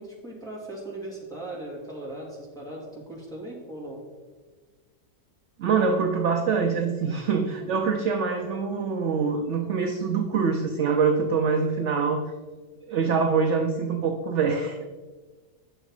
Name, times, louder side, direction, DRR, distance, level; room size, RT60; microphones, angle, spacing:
voice 1, 0.0-4.0 7.7-7.8, right 1 dB, ahead, -6 dB, 2.5 m, -38 dB
voice 2, 5.6-12.2 12.9-14.8, right 5 dB, 60° right, 4 dB, 0.9 m, -24 dB
9.2 x 6.3 x 4.8 m, 1.4 s
omnidirectional pair, 1.7 m